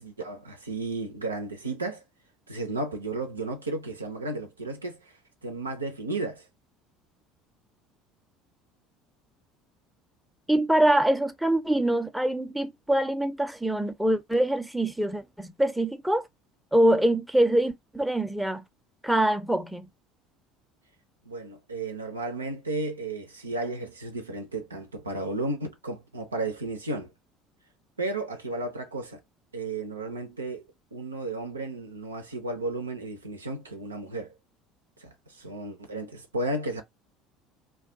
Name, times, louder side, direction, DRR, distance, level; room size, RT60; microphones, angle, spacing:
voice 1, 0.0-2.0 2.5-5.1 5.4-6.4 21.3-27.1 28.0-29.2 29.5-30.6 30.9-34.3 35.0-36.8, right 2 dB, 90° right, 0.6 m, -33 dB
voice 2, 10.5-16.3 16.7-18.6 19.0-19.9, right 1 dB, 5° right, 0.6 m, -24 dB
2.3 x 2.3 x 3.8 m
figure-of-eight pair, 65°, 0 cm